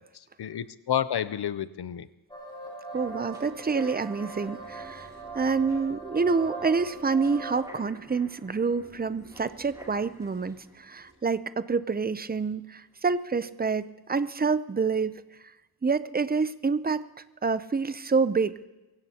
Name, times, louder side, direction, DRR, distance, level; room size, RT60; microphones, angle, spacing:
voice 1, 0.0-2.1, left 9 dB, 80° left, 15 dB, 0.6 m, -30 dB
sound 1, 2.3-7.6, right 4 dB, 10° left, 4.5 m, -40 dB
sound 2, 2.9-13.0 13.4-13.5, right 1 dB, 10° right, 2.4 m, -51 dB
voice 2, 2.9-5.1 5.3-15.2 15.8-17.0 17.4-18.5, right 4 dB, 25° right, 14 dB, 0.5 m, -27 dB
23.0 x 16.5 x 2.9 m, 1.0 s
wide cardioid pair, 85°, 38 cm